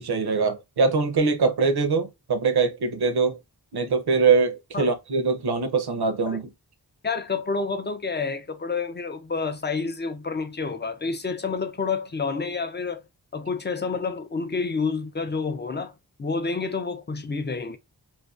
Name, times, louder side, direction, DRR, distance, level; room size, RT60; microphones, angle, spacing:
voice 1, 0.0-3.4 3.7-6.5, right 4 dB, 65° right, 0.6 m, -23 dB
voice 2, 7.0-13.0 13.3-15.9 16.2-17.8, left 4 dB, 25° left, 0.4 m, -29 dB
2.5 x 2.1 x 2.3 m
wide cardioid pair, 70°, 42 cm